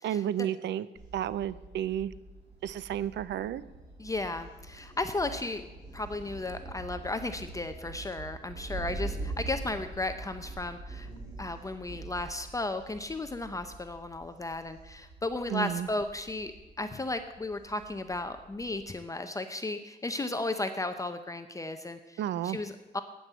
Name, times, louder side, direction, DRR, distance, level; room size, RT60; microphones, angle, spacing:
voice 1, 0.0-0.9 1.1-2.1 2.6-3.6 15.5-15.9 22.2-22.6, right 11 dB, 70° right, 17 dB, 0.5 m, -31 dB
Thunder, 1.0-19.0, right 3 dB, 20° right, 5.0 m, -44 dB
voice 2, 4.0-5.6 5.9-11.1 11.4-16.5 16.8-23.0, left 2 dB, 15° left, 8 dB, 0.6 m, -35 dB
9.3 x 9.1 x 8.1 m, 1.1 s
cardioid pair, 130°, 19 cm